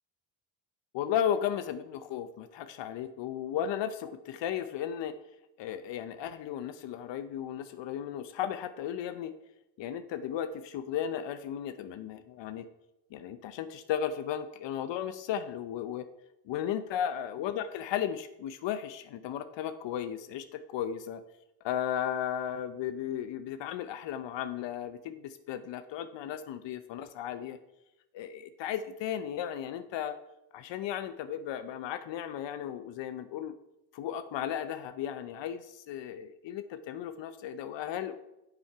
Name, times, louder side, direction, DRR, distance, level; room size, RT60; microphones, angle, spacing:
voice 1, 0.9-5.2 5.6-9.3 9.8-12.7 13.1-16.0 16.5-21.2 21.6-27.6 28.1-30.2 30.5-33.5 33.9-38.1, left 9 dB, 70° left, 11 dB, 0.7 m, -35 dB
7.7 x 7.3 x 4.6 m, 0.92 s
cardioid pair, 90°, 46 cm